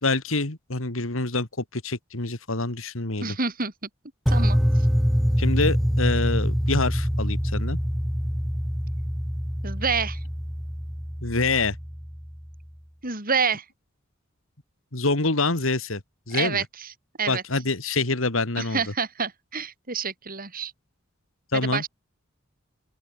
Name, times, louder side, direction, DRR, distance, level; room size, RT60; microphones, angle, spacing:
voice 1, 0.0-3.4 5.4-7.8 11.2-11.8 14.9-16.6 17.3-18.8 21.5-21.9, left 3 dB, 75° left, 2.6 m, -26 dB
voice 2, 3.2-3.7 4.3-4.6 9.6-10.2 13.0-13.7 16.3-16.9 17.2-17.4 18.6-20.7 21.5-21.9, right 5 dB, 45° right, 7.0 m, -28 dB
sound 1, 4.3-12.4, equal, ahead, 1.4 m, -25 dB
open air
head